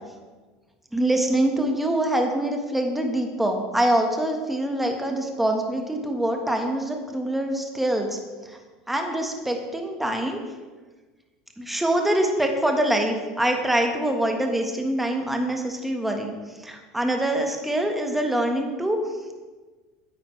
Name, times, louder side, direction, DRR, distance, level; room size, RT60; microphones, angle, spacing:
voice 1, 0.9-8.6 8.9-10.4 11.6-19.2, right 1 dB, 5° right, 3 dB, 1.4 m, -25 dB
9.7 x 8.4 x 3.3 m, 1.3 s
supercardioid pair, 100°, 3 cm